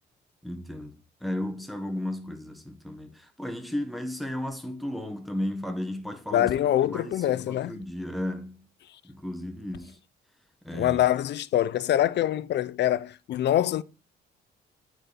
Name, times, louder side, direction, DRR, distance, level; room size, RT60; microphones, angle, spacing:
voice 1, 0.4-0.9 1.2-6.5 6.8-8.7 9.0-10.0 10.6-11.0, left 1 dB, ahead, 1.3 m, -34 dB
voice 2, 6.3-7.9 10.7-13.8, left 12 dB, 60° left, 0.5 m, -25 dB
9.0 x 4.2 x 4.1 m
cardioid pair, 90°, 20 cm